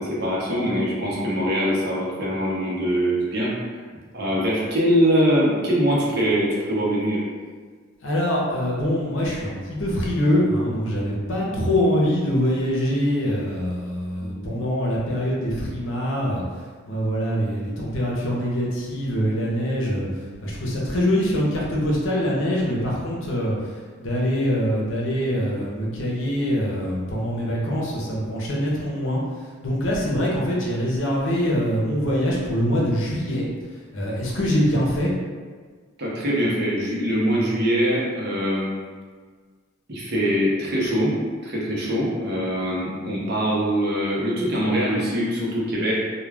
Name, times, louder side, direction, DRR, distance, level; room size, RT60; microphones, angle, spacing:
voice 1, 0.0-3.8 4.1-7.2 11.4-11.5 14.2-14.6 36.0-38.7 39.9-41.2 41.4-45.9, equal, 50° right, -5 dB, 0.7 m, -23 dB
voice 2, 8.0-16.4 16.9-29.2 29.6-33.5 33.9-35.1, equal, 70° left, -4 dB, 0.7 m, -24 dB
2.3 x 2.2 x 3.3 m, 1.5 s
head